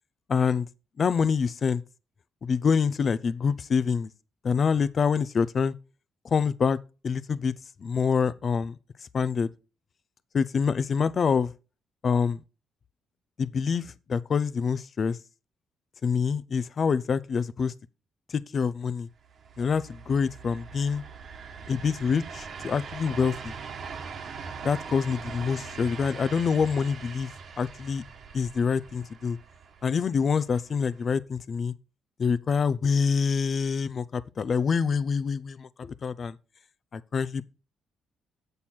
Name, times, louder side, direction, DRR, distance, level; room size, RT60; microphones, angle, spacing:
voice 1, 0.3-0.7 1.0-1.8 2.4-4.1 4.4-5.7 6.3-6.8 7.0-7.5 7.8-8.7 9.1-9.5 10.3-11.5 12.0-12.4 13.4-15.2 16.0-17.7 18.3-19.1 19.6-21.0 21.7-23.5 24.6-27.3 27.6-28.0 28.3-29.4 29.8-31.7 32.2-36.4 36.9-37.4, left 6 dB, 45° left, 0.6 m, -26 dB
sound 1, 19.2-31.2, right 5 dB, 60° right, 1.3 m, -42 dB
8.1 x 7.4 x 4.3 m
cardioid pair, 90°, 0 cm